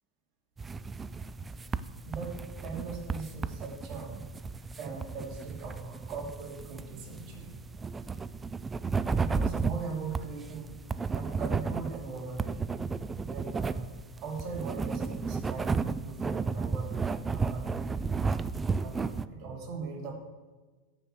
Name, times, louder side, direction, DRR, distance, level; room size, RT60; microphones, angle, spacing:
sound 1, 0.6-19.3, right 4 dB, 15° right, 0.4 m, -33 dB
voice 1, 2.1-4.3 4.7-7.6 9.2-10.8 11.1-12.6 13.2-13.8 14.2-17.8 18.7-20.1, right 4 dB, 40° right, -1 dB, 3.0 m, -40 dB
13.5 x 5.3 x 7.5 m, 1.3 s
supercardioid pair, 130°, 0 cm